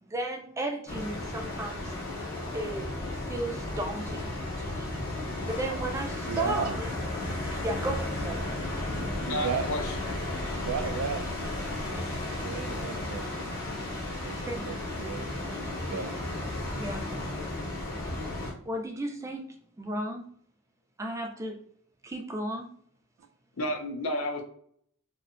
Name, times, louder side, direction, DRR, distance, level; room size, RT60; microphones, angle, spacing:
voice 1, 0.0-1.9 2.5-2.9 3.2-4.3 4.6-4.9 5.5-6.9 7.6-8.5 14.5-14.6 16.8-17.0 18.6-19.4 19.8-20.2 21.0-21.5 22.0-22.7, right 1 dB, 15° right, 2 dB, 0.3 m, -34 dB
sound 1, 0.9-18.5, left 1 dB, 45° left, 0.8 m, -34 dB
voice 2, 6.3-6.8 8.2-8.3 8.9-9.7 10.6-11.2 12.1-13.3 14.2-16.3, right 6 dB, 85° right, 8 dB, 0.4 m, -35 dB
voice 3, 9.3-10.0 11.8-12.5 23.6-24.4, equal, 70° left, 4 dB, 0.5 m, -32 dB
2.6 x 2.1 x 2.4 m, 0.62 s
head